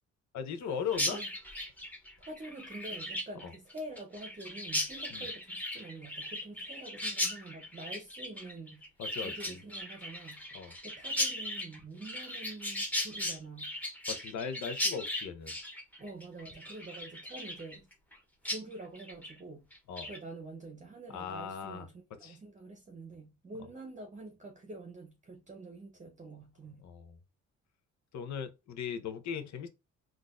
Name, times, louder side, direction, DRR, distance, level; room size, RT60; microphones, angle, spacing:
voice 1, 0.3-1.2 3.4-3.5 5.1-5.2 9.0-9.6 10.5-10.7 14.1-15.6 19.9-20.1 21.1-21.9 22.2-22.4 26.8-27.1 28.1-29.7, left 7 dB, 65° left, 0.7 m, -38 dB
Chirp tweet, 0.9-18.2 18.4-18.6 18.9-19.3 19.7-20.2, left 1 dB, 5° left, 0.9 m, -37 dB
voice 2, 2.2-8.9 9.2-13.8 16.0-17.9 18.4-19.7 20.0-26.9, right 2 dB, 25° right, 0.8 m, -47 dB
3.8 x 2.4 x 2.4 m
cardioid pair, 90°, 30 cm